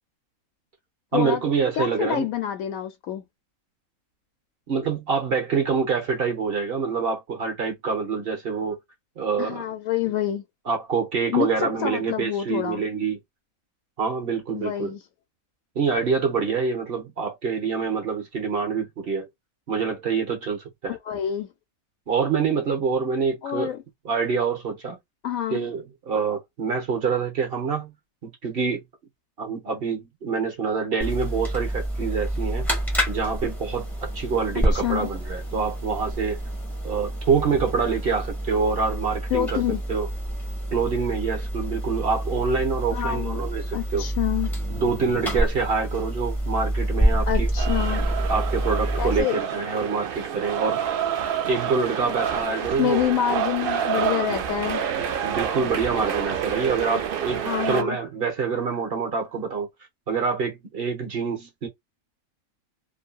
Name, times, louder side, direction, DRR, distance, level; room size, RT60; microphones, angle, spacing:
voice 1, 1.1-2.3 4.7-8.8 9.2-9.6 10.7-13.2 14.0-14.9 15.7-19.3 19.7-20.9 22.1-23.7 24.0-25.0 25.5-27.9 28.2-28.8 29.4-32.7 33.1-36.4 36.8-39.6 39.9-40.1 40.7-44.1 44.7-47.5 48.3-50.8 51.5-53.1 55.2-59.7 60.1-61.7, right 5 dB, 45° right, 1.0 m, -26 dB
voice 2, 1.7-3.2 9.4-10.4 11.3-12.8 14.5-15.0 20.9-21.5 23.4-23.8 25.2-25.7 34.7-35.1 39.3-39.8 42.9-44.5 47.3-48.1 49.0-49.4 52.8-54.8 57.4-58.0, left 11 dB, 70° left, 1.0 m, -27 dB
sound 1, 31.0-49.2, right 1 dB, ahead, 0.9 m, -28 dB
sound 2, 47.6-57.8, right 8 dB, 85° right, 0.5 m, -28 dB
2.6 x 2.6 x 2.2 m
omnidirectional pair, 1.5 m